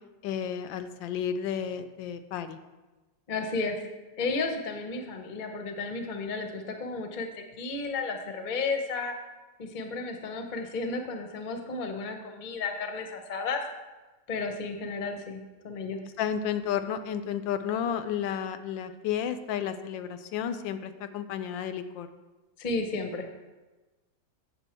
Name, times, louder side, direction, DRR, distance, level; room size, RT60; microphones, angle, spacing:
voice 1, 0.2-2.6 16.2-22.1, left 8 dB, 85° left, 10 dB, 1.3 m, -32 dB
voice 2, 3.3-3.8 4.2-7.3 7.6-9.1 9.6-13.6 14.3-16.0 22.6-23.3, left 3 dB, 40° left, 5 dB, 0.7 m, -33 dB
8.0 x 6.9 x 4.4 m, 1.2 s
omnidirectional pair, 2.0 m